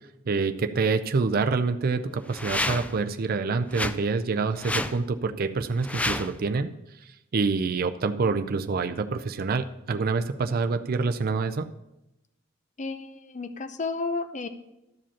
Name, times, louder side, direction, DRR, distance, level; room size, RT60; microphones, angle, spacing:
voice 1, 0.3-6.7 7.0-11.7, right 4 dB, 50° right, 7 dB, 0.5 m, -26 dB
sound 1, 2.2-3.0 3.7-4.0 4.5-5.0 5.8-6.4, left 1 dB, 5° left, 0.4 m, -30 dB
voice 2, 12.8-14.5, left 3 dB, 40° left, 10 dB, 0.7 m, -32 dB
12.5 x 5.0 x 7.1 m, 0.91 s
head